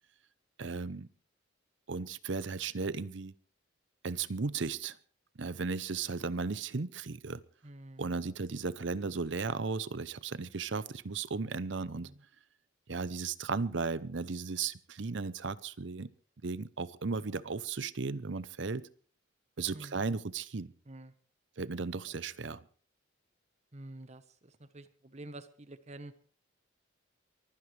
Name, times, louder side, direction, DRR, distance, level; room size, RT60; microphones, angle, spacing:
voice 1, 0.6-1.1 1.9-3.3 4.0-5.0 5.4-7.4 8.0-12.1 12.9-16.1 16.4-18.9 19.6-20.7 21.6-22.6, right 4 dB, 65° right, 17 dB, 0.7 m, -35 dB
voice 2, 7.6-8.2 11.9-12.2 19.7-20.1 20.9-21.1 23.7-26.1, right 1 dB, 35° right, 11 dB, 1.1 m, -49 dB
23.5 x 15.5 x 3.3 m, 0.43 s
head